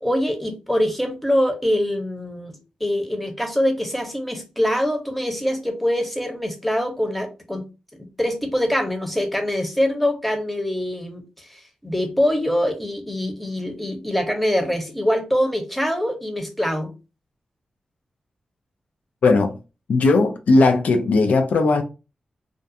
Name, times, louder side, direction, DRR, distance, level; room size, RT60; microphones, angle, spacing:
voice 1, 0.0-2.5 2.8-7.6 8.2-16.9, equal, 5° left, 0.8 m, -24 dB
voice 2, 19.2-19.6 19.9-21.8, left 3 dB, 75° left, 0.3 m, -17 dB
2.4 x 2.2 x 2.6 m
cardioid pair, 50°, 3 cm